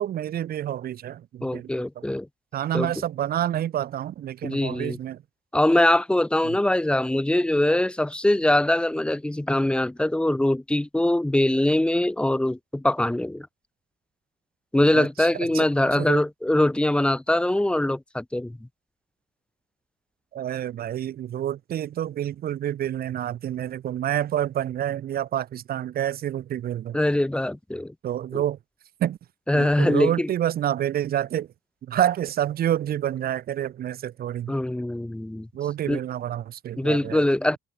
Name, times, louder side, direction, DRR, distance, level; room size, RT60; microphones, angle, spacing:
voice 1, 0.0-1.7 2.5-5.2 6.4-6.6 14.9-15.3 15.5-16.2 20.3-27.0 28.0-28.6 29.0-29.2 29.5-31.5 31.8-34.5 35.5-37.2, right 11 dB, 55° right, 6.8 m, -28 dB
voice 2, 1.4-2.3 2.7-2.9 4.4-5.0 5.5-13.5 14.7-18.6 26.9-27.9 28.3-28.4 29.5-30.3 34.5-35.5 35.9-36.0 36.8-37.6, left 1 dB, 5° left, 1.9 m, -22 dB
cardioid pair, 140°, 18 cm